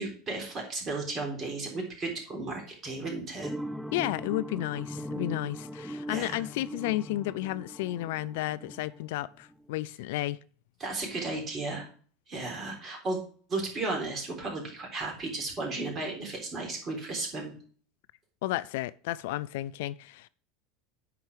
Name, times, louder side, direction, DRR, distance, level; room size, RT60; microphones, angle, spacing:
voice 1, 0.0-3.5 6.1-6.4 10.8-11.9 12.3-13.2 13.5-17.6, right 3 dB, 35° right, 3.8 m, -34 dB
sound 1, 3.4-9.6, equal, ahead, 0.6 m, -40 dB
voice 2, 3.9-10.4 18.4-20.3, left 16 dB, 65° left, 0.3 m, -32 dB
9.6 x 4.5 x 4.9 m
figure-of-eight pair, 75°, 0 cm